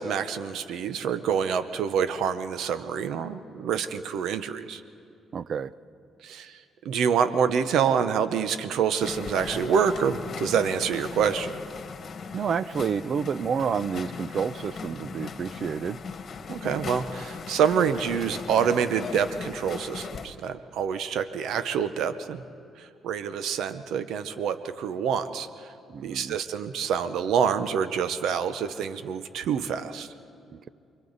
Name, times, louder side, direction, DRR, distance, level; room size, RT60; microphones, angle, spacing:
voice 1, 0.0-4.8 6.2-11.6 16.5-22.4 22.8-25.7 26.0-30.1, right 7 dB, 80° right, 11 dB, 0.8 m, -27 dB
voice 2, 5.3-5.7 12.3-16.0 25.9-26.4 30.5-30.7, right 7 dB, 55° right, 17 dB, 0.6 m, -29 dB
sound 1, 9.0-20.3, left 5 dB, 50° left, 1.6 m, -38 dB
29.0 x 23.5 x 4.0 m, 2.6 s
cardioid pair, 90°, 0 cm